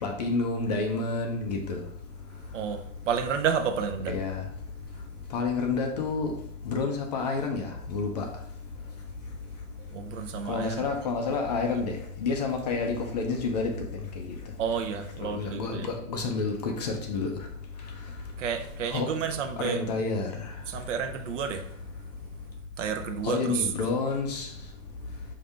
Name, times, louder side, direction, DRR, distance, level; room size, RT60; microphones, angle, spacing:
voice 1, 0.0-1.8 4.1-4.4 5.3-6.3 6.6-8.3 10.5-13.7 14.2-14.4 15.2-17.3 18.9-19.1 19.6-20.3 23.2-24.5, left 4 dB, 35° left, 0.4 m, -29 dB
voice 2, 2.5-4.1 9.9-10.9 14.6-15.9 18.4-19.8 20.7-21.7 22.8-23.7, right 7 dB, 70° right, 0.7 m, -30 dB
5.0 x 2.7 x 3.3 m
supercardioid pair, 165°, 39 cm